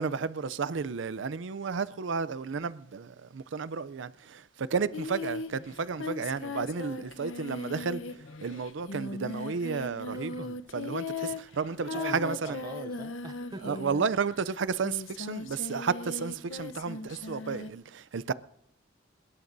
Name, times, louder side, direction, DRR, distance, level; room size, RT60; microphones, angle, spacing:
voice 1, 0.0-10.5 10.7-12.6 13.6-18.3, right 5 dB, 70° right, 0.5 m, -32 dB
Singing, 4.9-14.3 14.8-17.7, left 3 dB, 80° left, 0.9 m, -38 dB
voice 2, 11.9-13.8, right 2 dB, 20° right, 0.6 m, -42 dB
23.0 x 21.0 x 2.7 m
head